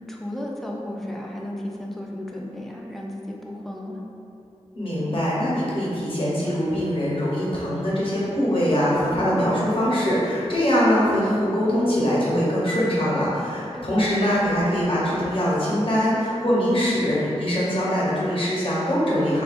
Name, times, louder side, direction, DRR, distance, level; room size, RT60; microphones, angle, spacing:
voice 1, 0.0-4.0 9.1-9.6 13.7-14.0, left 1 dB, ahead, -2 dB, 0.3 m, -34 dB
voice 2, 4.7-19.4, equal, 50° left, -8 dB, 0.8 m, -22 dB
3.5 x 2.3 x 2.4 m, 2.6 s
wide cardioid pair, 110°, 12 cm